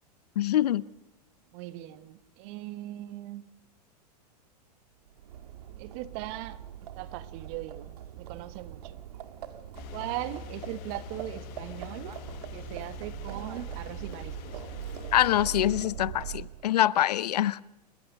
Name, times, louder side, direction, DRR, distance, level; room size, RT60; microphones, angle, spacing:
voice 1, 0.4-0.8 15.1-17.6, left 12 dB, 70° left, 0.6 m, -25 dB
voice 2, 1.5-3.4 5.8-6.6 7.0-9.0 9.9-12.1 12.5-14.6, right 15 dB, 50° right, 1.4 m, -39 dB
Livestock farm animals working animals, 5.1-16.7, right 11 dB, 65° right, 1.8 m, -42 dB
sound 1, 9.7-15.8, left 21 dB, 45° left, 1.0 m, -45 dB
29.5 x 15.0 x 6.6 m
hypercardioid pair, 100°, 21 cm